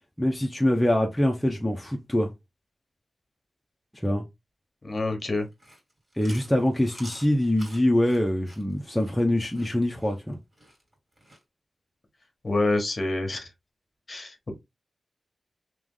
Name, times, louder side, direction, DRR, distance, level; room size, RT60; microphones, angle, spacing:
voice 1, 0.2-2.3 4.0-4.2 6.2-10.4, left 1 dB, 5° left, 0.7 m, -24 dB
voice 2, 4.8-5.5 12.4-13.5 14.1-14.5, left 2 dB, 35° left, 1.3 m, -27 dB
Chewing mastication, 5.4-11.4, right 1 dB, 25° right, 2.4 m, -49 dB
3.4 x 3.1 x 3.7 m
wide cardioid pair, 130°, 0 cm